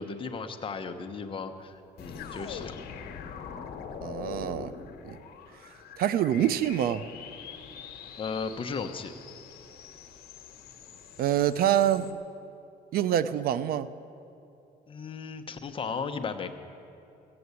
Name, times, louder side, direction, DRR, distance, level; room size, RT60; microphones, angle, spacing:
voice 1, 0.0-2.7 8.2-9.1 14.9-16.5, left 5 dB, 30° left, 6 dB, 0.9 m, -35 dB
sound 1, 2.0-12.1, left 7 dB, 65° left, 1.2 m, -43 dB
voice 2, 4.0-4.7 5.0-5.2 6.0-7.1 11.2-12.1 12.9-13.9, right 11 dB, 65° right, 15 dB, 0.6 m, -26 dB
15.0 x 7.8 x 8.3 m, 2.7 s
cardioid pair, 110°, 17 cm